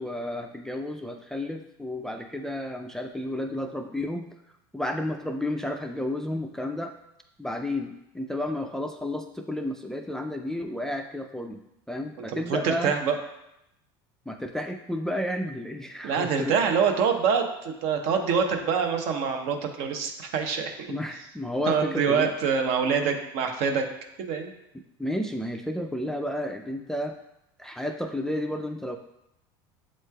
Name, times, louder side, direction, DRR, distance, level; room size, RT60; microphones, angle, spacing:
voice 1, 0.0-4.3 4.7-6.9 7.4-11.6 11.9-13.0 14.3-16.6 20.9-22.3 25.0-27.2 27.6-29.0, left 1 dB, 5° left, 4 dB, 0.3 m, -32 dB
voice 2, 12.3-13.2 16.0-21.0 21.7-23.9 24.2-24.5, right 6 dB, 65° right, 4 dB, 0.7 m, -25 dB
7.3 x 3.1 x 2.2 m, 0.83 s
supercardioid pair, 95°, 12 cm